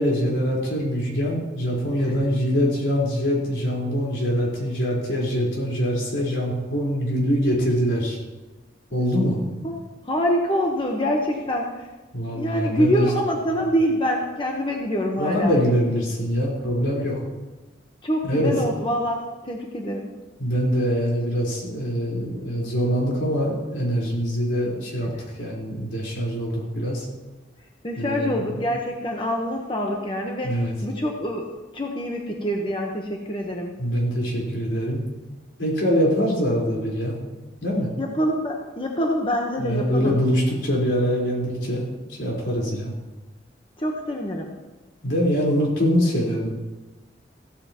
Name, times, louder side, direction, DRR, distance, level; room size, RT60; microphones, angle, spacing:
voice 1, 0.0-8.2 8.9-9.4 12.1-13.1 15.2-17.2 18.2-18.5 20.4-25.1 25.4-27.0 28.0-28.6 30.4-30.7 33.8-35.0 35.6-37.2 37.6-37.9 39.6-41.9 42.2-42.9 45.0-46.5, equal, 85° left, -4 dB, 4.5 m, -24 dB
voice 2, 10.0-11.9 12.3-15.6 18.0-20.1 25.2-25.3 27.8-30.5 30.8-33.7 38.0-40.2 43.8-44.5, equal, 30° left, 0 dB, 1.2 m, -25 dB
15.5 x 13.5 x 3.0 m, 1.2 s
head